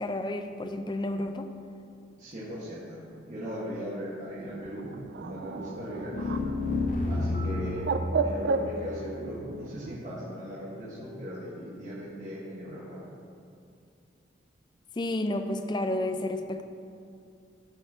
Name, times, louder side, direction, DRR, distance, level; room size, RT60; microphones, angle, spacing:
voice 1, 0.0-1.5 15.0-16.6, left 1 dB, 25° left, 7 dB, 0.3 m, -31 dB
voice 2, 2.2-4.9 5.2-6.4 7.1-7.8 8.2-13.0, equal, 45° right, -10 dB, 1.5 m, -38 dB
Bird, 4.5-10.0, right 4 dB, 60° right, 0.3 m, -34 dB
sound 1, 6.1-7.9, left 3 dB, 45° left, 0.8 m, -29 dB
11.5 x 4.5 x 3.7 m, 2.5 s
head